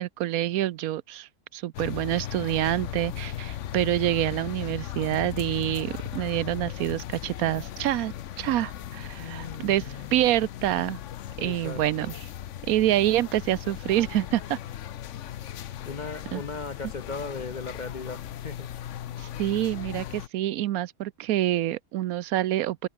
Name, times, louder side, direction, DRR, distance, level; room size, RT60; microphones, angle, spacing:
voice 1, 0.0-11.0 11.4-12.2 12.7-14.6 16.3-16.4 19.2-22.9, right 14 dB, 80° right, 1.1 m, -27 dB
sound 1, 1.7-20.3, left 11 dB, 65° left, 1.0 m, -37 dB
voice 2, 9.2-10.1 11.4-12.1 15.8-18.7, left 4 dB, 40° left, 0.8 m, -37 dB
omnidirectional pair, 1.5 m